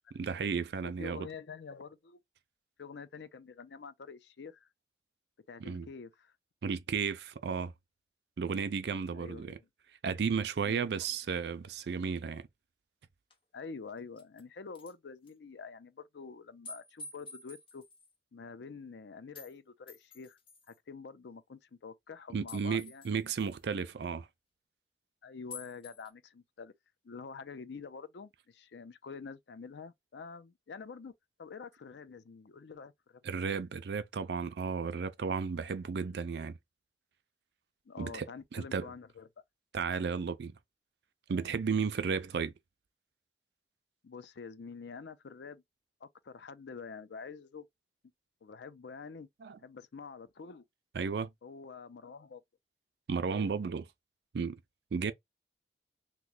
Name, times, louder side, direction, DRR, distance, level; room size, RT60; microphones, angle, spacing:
voice 1, 0.1-1.3 5.6-5.9 6.6-7.7 8.4-9.6 10.0-12.5 22.3-24.3 33.2-36.6 38.0-38.9 39.7-40.5 41.3-42.5 49.4-49.6 50.9-51.3 53.1-53.9 54.3-54.6 54.9-55.1, right 5 dB, 70° right, 0.4 m, -33 dB
voice 2, 0.8-2.2 2.8-4.7 5.5-6.3 9.1-9.6 10.6-11.2 13.5-17.8 18.3-20.4 20.7-23.0 25.2-26.7 27.0-31.1 31.4-33.4 37.9-39.3 44.0-45.6 46.0-47.6 48.4-49.3 49.6-50.6 51.4-52.4, left 5 dB, 75° left, 0.5 m, -47 dB
sound 1, 13.3-13.4 14.0-14.4 14.8-14.9 15.3-15.4 16.6-18.1 19.3-19.5 19.9-20.8 22.5-23.6 25.5-26.1, left 3 dB, 30° left, 0.7 m, -49 dB
3.0 x 2.1 x 3.8 m
head